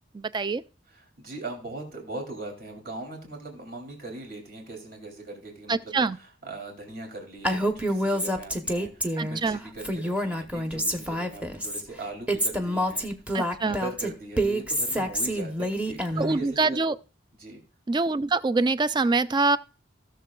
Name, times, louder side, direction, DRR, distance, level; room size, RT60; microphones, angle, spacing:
voice 1, 0.1-0.6 5.7-6.2 9.2-9.6 13.3-13.8 16.2-17.0 17.9-19.6, right 3 dB, 25° right, 0.4 m, -25 dB
voice 2, 0.9-13.1 13.6-16.8 17.4-17.6, right 2 dB, 55° right, 3.1 m, -40 dB
Female speech woman speaking, 7.4-9.4 9.8-11.8 12.3-16.4, equal, 5° right, 0.9 m, -27 dB
16.5 x 6.7 x 2.4 m
head